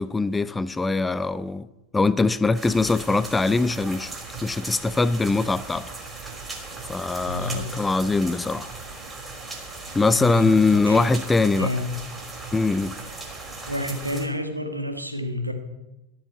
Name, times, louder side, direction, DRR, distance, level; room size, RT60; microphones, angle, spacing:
voice 1, 0.0-1.7 1.9-4.1 4.4-5.9 6.9-8.7 9.9-11.7 12.5-13.0, left 3 dB, 10° left, 0.4 m, -22 dB
sound 1, 2.5-14.3, right 3 dB, 10° right, 3.1 m, -38 dB
voice 2, 7.2-7.7 10.1-11.1 11.6-11.9 13.7-15.5, left 1 dB, 85° right, 1.7 m, -29 dB
12.5 x 7.8 x 8.4 m
figure-of-eight pair, 90°, 0 cm